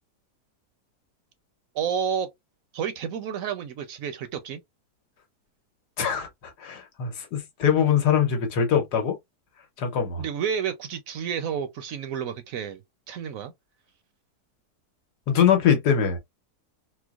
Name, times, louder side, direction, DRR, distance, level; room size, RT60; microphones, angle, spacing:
voice 1, 1.7-2.3 2.7-4.6 10.2-12.8 13.1-13.5, right 7 dB, 70° right, 0.9 m, -30 dB
voice 2, 6.0-9.2 9.8-10.2 15.3-16.2, left 8 dB, 80° left, 1.5 m, -23 dB
4.4 x 2.1 x 2.3 m
omnidirectional pair, 1.7 m